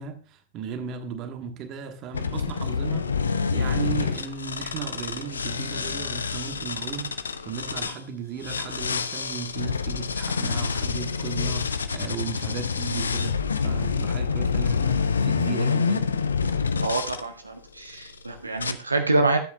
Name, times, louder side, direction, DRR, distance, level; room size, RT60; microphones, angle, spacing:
voice 1, 0.0-16.1, right 7 dB, 35° right, 1.4 m, -36 dB
sound 1, 2.1-8.0 8.4-17.2 17.9-18.2 18.6-18.7, left 5 dB, 75° left, 0.5 m, -27 dB
voice 2, 16.8-19.4, right 2 dB, 80° right, 0.7 m, -26 dB
13.0 x 8.3 x 2.3 m
figure-of-eight pair, 90°, 0 cm